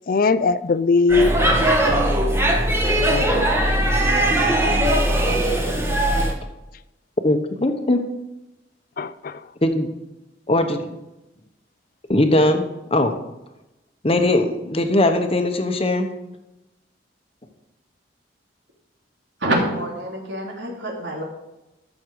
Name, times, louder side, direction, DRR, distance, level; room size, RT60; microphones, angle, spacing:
voice 1, 0.1-2.4 3.1-3.5 9.0-9.4, left 4 dB, 50° left, 15 dB, 0.4 m, -21 dB
Speech / Shout / Subway metro underground, 1.1-6.3, right 1 dB, 15° right, 1.4 m, -19 dB
voice 2, 7.2-8.0 9.6-9.9 10.5-10.8 12.1-12.6 12.9-13.1 14.0-16.1, left 1 dB, 35° left, 7 dB, 1.1 m, -19 dB
voice 3, 19.4-21.2, right 1 dB, 85° right, -1 dB, 2.8 m, -26 dB
14.0 x 6.5 x 4.7 m, 0.96 s
head